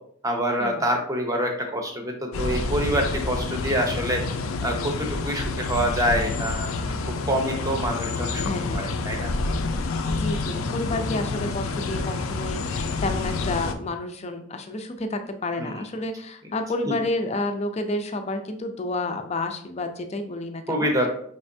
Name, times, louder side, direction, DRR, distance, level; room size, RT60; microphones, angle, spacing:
voice 1, 0.2-4.2 4.6-7.0 7.3-9.3 15.6-15.7 16.9-17.0 20.7-21.1, equal, 15° right, 3 dB, 0.7 m, -26 dB
sound 1, 2.3-13.7, left 3 dB, 90° left, 0.4 m, -28 dB
voice 2, 8.4-8.9 10.1-20.9, left 2 dB, 30° left, 6 dB, 0.4 m, -30 dB
5.2 x 3.2 x 2.6 m, 0.62 s
head